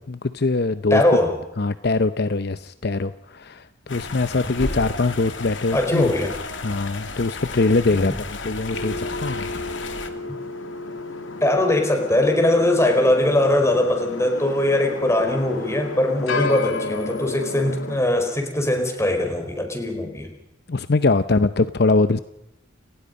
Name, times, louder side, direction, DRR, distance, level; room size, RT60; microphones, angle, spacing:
voice 1, 0.0-1.0 1.6-6.1 6.6-9.5 20.7-22.2, left 3 dB, 55° left, 12 dB, 0.7 m, -22 dB
voice 2, 0.9-1.4 5.7-6.4 7.9-8.1 11.4-20.3, left 1 dB, 15° left, 4 dB, 4.8 m, -21 dB
sound 1, 3.9-10.1, left 3 dB, 70° left, 2.6 m, -33 dB
sound 2, 8.7-18.0, left 2 dB, 90° left, 2.6 m, -32 dB
30.0 x 19.0 x 5.4 m, 0.83 s
head